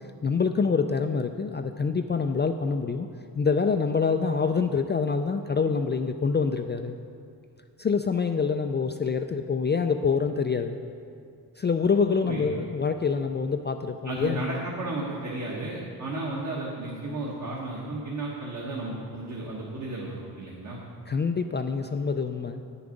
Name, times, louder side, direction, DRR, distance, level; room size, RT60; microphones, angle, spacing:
voice 1, 0.2-3.1 3.3-7.0 7.8-10.8 11.6-14.5 21.1-22.6, left 5 dB, 30° left, 6 dB, 0.4 m, -26 dB
voice 2, 14.0-20.8, right 2 dB, 50° right, -4 dB, 1.5 m, -33 dB
8.6 x 6.9 x 5.2 m, 2.3 s
cardioid pair, 75°, 39 cm